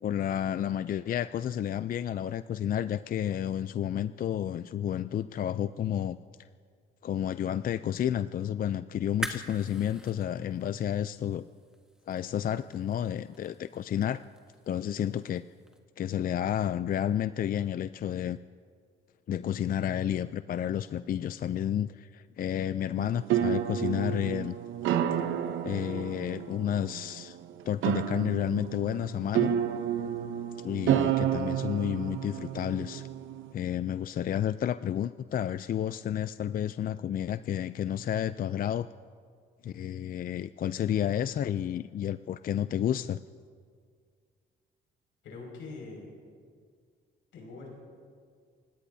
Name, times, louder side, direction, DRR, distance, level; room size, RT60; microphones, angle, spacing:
voice 1, 0.0-6.2 7.0-11.4 12.1-14.2 14.7-15.4 16.0-18.4 19.3-24.6 25.6-27.4 27.7-29.5 30.6-33.1 33.5-38.9 39.6-43.2, left 10 dB, 45° left, 13 dB, 0.4 m, -31 dB
sound 1, 9.0-15.8, equal, 5° right, 1.5 m, -45 dB
sound 2, 23.0-33.5, right 10 dB, 85° right, 0.8 m, -31 dB
voice 2, 45.2-46.1 47.3-47.7, left 3 dB, 85° left, -1 dB, 5.7 m, -43 dB
29.5 x 17.0 x 2.7 m, 2.1 s
cardioid pair, 90°, 20 cm